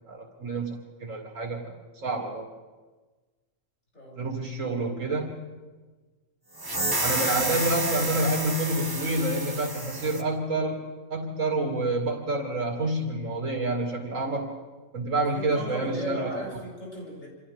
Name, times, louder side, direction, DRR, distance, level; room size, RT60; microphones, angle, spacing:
voice 1, 0.1-0.7 1.0-2.5 4.2-5.3 7.0-14.5 14.9-16.3, right 2 dB, 70° right, 1 dB, 2.7 m, -28 dB
voice 2, 3.9-4.3 15.2-17.3, equal, 75° left, -4 dB, 7.8 m, -36 dB
sound 1, 6.6-10.2, right 1 dB, 15° right, 1.4 m, -29 dB
29.0 x 25.5 x 3.6 m, 1.3 s
omnidirectional pair, 1.4 m